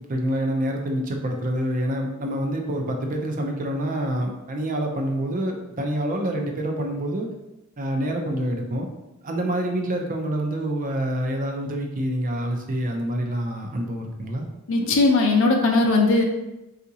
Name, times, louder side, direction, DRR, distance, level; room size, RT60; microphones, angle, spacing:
voice 1, 0.1-7.3 7.8-8.9 9.2-14.5, right 1 dB, 40° right, 2 dB, 0.5 m, -27 dB
voice 2, 14.7-16.2, left 3 dB, 65° left, 2 dB, 0.5 m, -18 dB
3.7 x 2.4 x 2.7 m, 0.95 s
head